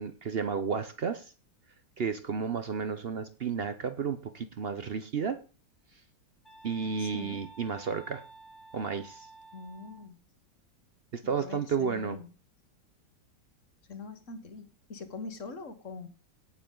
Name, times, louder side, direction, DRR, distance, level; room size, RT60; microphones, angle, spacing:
voice 1, 0.0-1.3 2.0-5.4 6.6-8.2 8.7-9.3 11.1-12.2, right 6 dB, 65° right, 11 dB, 0.5 m, -32 dB
sound 1, 6.4-10.1, right 3 dB, 20° left, 0.9 m, -52 dB
voice 2, 7.0-7.4 9.5-10.2 11.2-12.3 13.9-16.1, left 4 dB, 45° left, 9 dB, 1.4 m, -43 dB
17.5 x 6.8 x 3.8 m, 0.35 s
omnidirectional pair, 1.9 m